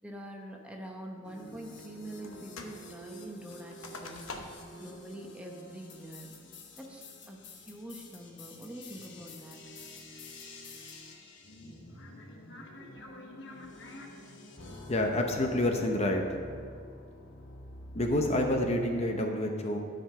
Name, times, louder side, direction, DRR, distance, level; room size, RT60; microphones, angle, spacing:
voice 1, 0.0-4.3 4.8-6.3 6.8-9.6, right 1 dB, 5° right, 1 dB, 0.8 m, -45 dB
sound 1, 1.2-19.2, left 1 dB, 60° left, 1.1 m, -48 dB
sound 2, 2.2-2.8 3.1-4.8 5.2-5.3 5.8-6.2 6.7-7.1, left 3 dB, 85° left, 1.0 m, -45 dB
voice 2, 14.9-16.2 17.9-19.8, left 1 dB, 30° left, 3 dB, 0.7 m, -28 dB
12.5 x 5.0 x 5.6 m, 2.2 s
head